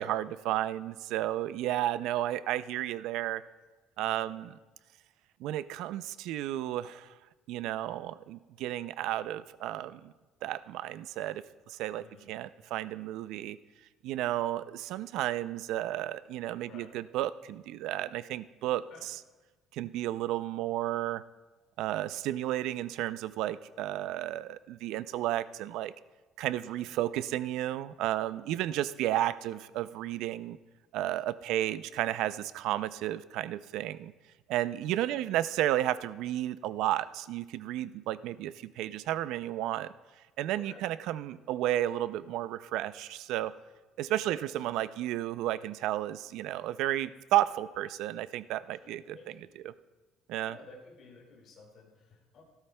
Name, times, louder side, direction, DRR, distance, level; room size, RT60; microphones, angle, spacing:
voice 1, 0.0-3.4 4.0-4.5 5.4-7.1 7.5-10.1 10.4-13.6 14.0-19.2 19.7-21.2 21.8-25.9 26.4-30.6 30.9-34.1 34.5-39.9 40.4-43.5 44.0-49.7 50.3-50.6, right 13 dB, 70° right, 15 dB, 0.3 m, -32 dB
voice 2, 4.0-4.4 11.9-12.3 16.6-16.9 18.9-19.1 26.7-26.9 28.5-28.8 31.4-31.7 35.1-35.3 40.5-40.8 44.2-44.4 48.8-49.5 50.4-52.4, left 4 dB, 50° left, -1 dB, 2.1 m, -53 dB
17.5 x 12.5 x 2.2 m, 1.2 s
cardioid pair, 155°, 0 cm